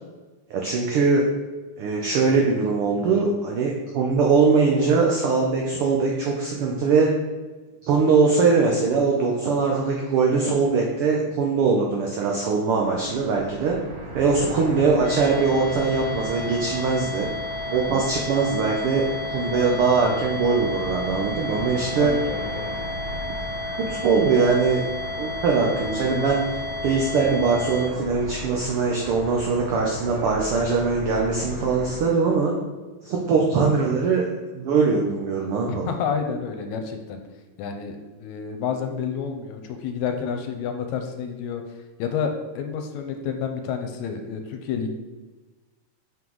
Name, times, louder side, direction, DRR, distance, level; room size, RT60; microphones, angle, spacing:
voice 1, 0.5-1.2 1.8-7.1 7.8-13.8 14.1-17.3 17.7-22.1 23.8-24.8 25.2-32.6 33.0-34.2 34.5-35.9, right 4 dB, 85° right, 0 dB, 1.2 m, -21 dB
sound 1, 12.7-32.0, equal, 70° right, 2.4 m, -37 dB
sound 2, 15.0-27.9, left 2 dB, 35° left, 0.3 m, -32 dB
voice 2, 22.0-22.7 35.7-37.2 37.6-41.6 42.0-44.9, left 6 dB, 85° left, 5 dB, 1.9 m, -29 dB
5.6 x 3.8 x 4.6 m, 1.2 s
omnidirectional pair, 3.4 m